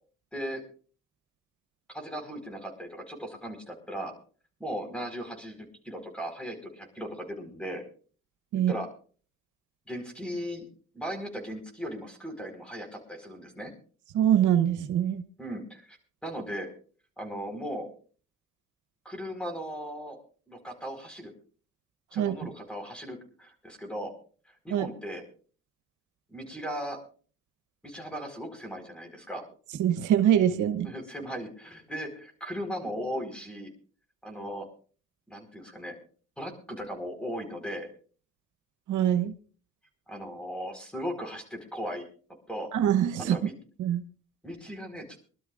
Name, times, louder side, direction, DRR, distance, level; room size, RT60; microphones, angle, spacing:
voice 1, 1.9-4.1 4.6-7.8 8.5-8.9 9.9-10.7 10.9-13.7 15.4-16.7 17.2-17.9 19.0-20.2 20.5-21.3 22.1-24.1 24.6-25.2 26.3-27.0 27.8-29.4 30.8-33.7 34.2-34.7 35.3-35.9 36.4-37.9 40.1-42.1 42.5-42.7 43.3-43.5 44.4-45.2, equal, 5° left, 4 dB, 4.5 m, -37 dB
voice 2, 14.1-15.2 22.2-22.3 24.7-24.9 29.8-30.9 38.9-39.3 42.7-43.4 43.8-44.0, right 10 dB, 80° right, 9 dB, 1.0 m, -24 dB
25.0 x 12.5 x 2.5 m, 0.40 s
cardioid pair, 90°, 30 cm